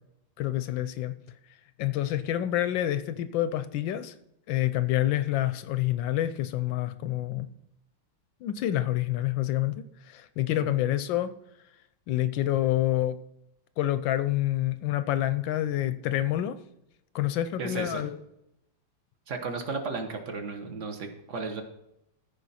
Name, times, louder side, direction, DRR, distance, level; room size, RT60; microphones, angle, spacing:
voice 1, 0.4-1.2 1.8-4.1 4.5-7.5 8.4-9.8 10.1-11.3 12.1-13.2 13.8-16.6 17.1-18.2, left 13 dB, 75° left, 13 dB, 1.2 m, -27 dB
voice 2, 17.6-18.1 19.3-21.6, right 4 dB, 45° right, 5 dB, 1.2 m, -34 dB
15.0 x 5.0 x 4.1 m, 0.81 s
omnidirectional pair, 2.3 m